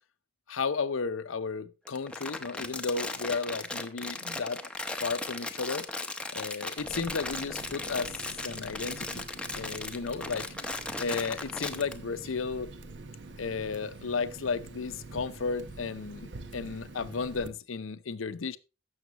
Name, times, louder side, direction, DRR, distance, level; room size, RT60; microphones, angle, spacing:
voice 1, 0.5-4.6 5.0-5.9 6.3-8.1 8.4-9.3 9.5-10.5 11.0-12.7 13.4-18.6, left 4 dB, 85° left, 0.7 m, -33 dB
Crumpling crinkling, 1.9-11.9, left 2 dB, 5° left, 0.7 m, -37 dB
Water tap faucet, 6.8-17.5, right 3 dB, 65° right, 0.9 m, -46 dB
15.5 x 6.5 x 2.9 m
head